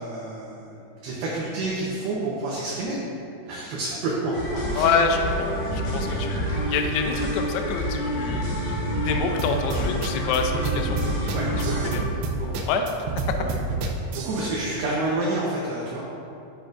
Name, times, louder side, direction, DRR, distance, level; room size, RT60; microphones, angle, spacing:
voice 1, 0.0-3.0 3.5-4.9 11.3-12.0 12.4-12.7 13.3-13.5 14.1-16.0, right 2 dB, 75° right, -5 dB, 2.5 m, -29 dB
sound 1, 4.3-12.0, equal, 60° left, 3.2 m, -28 dB
voice 2, 4.8-8.6 9.0-11.0 11.8-12.0 12.7-12.8 13.3-13.4, left 5 dB, 85° left, 4 dB, 2.4 m, -26 dB
sound 2, 9.4-14.4, right 4 dB, 90° right, 2.3 m, -29 dB
11.5 x 7.7 x 2.6 m, 2.6 s
omnidirectional pair, 5.4 m